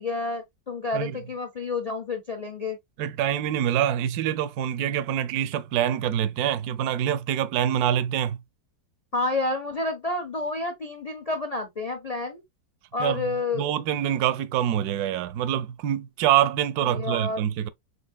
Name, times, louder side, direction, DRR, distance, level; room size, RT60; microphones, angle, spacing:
voice 1, 0.0-2.8 9.1-12.4 12.9-13.7 16.8-17.5, left 3 dB, 65° left, 0.3 m, -29 dB
voice 2, 3.0-8.4 13.0-13.3 13.5-17.7, right 10 dB, 70° right, 0.9 m, -25 dB
6.5 x 2.8 x 2.2 m
omnidirectional pair, 2.0 m